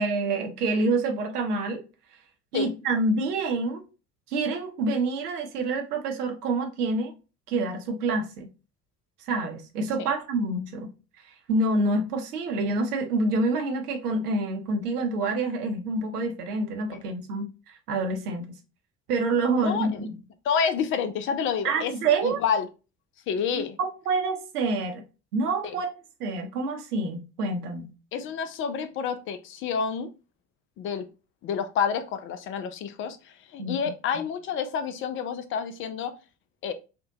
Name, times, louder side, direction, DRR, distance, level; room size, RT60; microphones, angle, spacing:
voice 1, 0.0-1.8 2.5-3.8 4.3-7.1 7.5-8.5 9.3-10.9 11.5-18.5 19.1-20.2 21.6-22.4 23.5-25.0 25.3-25.9 26.2-27.9 33.6-33.8 34.1-34.2, right 3 dB, 75° right, 0.7 m, -27 dB
voice 2, 19.5-20.0 20.4-21.9 22.2-22.7 23.3-23.8 25.6-25.7 28.1-30.1 30.8-31.1 31.4-36.1 36.6-36.7, left 7 dB, 30° left, 0.3 m, -29 dB
3.4 x 2.1 x 2.7 m
figure-of-eight pair, 55°, 46 cm